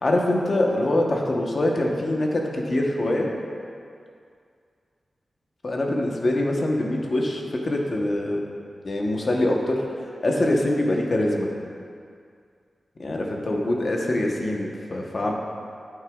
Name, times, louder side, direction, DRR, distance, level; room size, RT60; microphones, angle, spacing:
voice 1, 0.0-3.3 5.6-8.4 8.8-9.8 10.2-11.5 13.0-15.3, left 1 dB, 45° left, 0 dB, 1.0 m, -24 dB
9.7 x 9.0 x 2.4 m, 2.3 s
wide cardioid pair, 140°, 0 cm